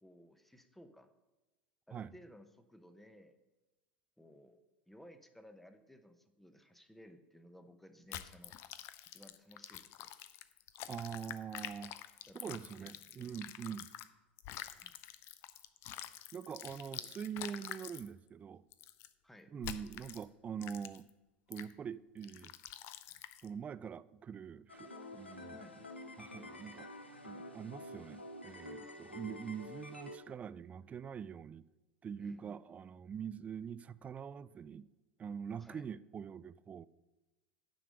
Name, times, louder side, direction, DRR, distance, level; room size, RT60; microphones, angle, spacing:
voice 1, 0.0-1.1 1.9-3.4 4.2-4.6 4.9-8.6 9.1-10.1 12.3-13.4 14.7-14.9 16.9-17.1 19.2-19.5 25.6-25.8 32.2-32.6 35.6-35.9, equal, 5° left, 0.9 m, -58 dB
sound 1, 8.1-14.1 14.4-18.1 18.7-19.1 19.6-20.2 20.6-21.1 21.5-21.7 22.2-23.5, left 12 dB, 45° left, 0.5 m, -47 dB
voice 2, 10.9-11.9 12.3-13.9 16.3-18.6 19.5-21.1 21.5-22.5 23.4-25.6 26.2-26.9 27.2-31.6 32.0-34.9 35.2-36.9, right 7 dB, 25° right, 0.3 m, -44 dB
sound 2, 24.7-30.2, left 1 dB, 90° left, 0.9 m, -49 dB
10.0 x 5.0 x 6.7 m
figure-of-eight pair, 80°, 6 cm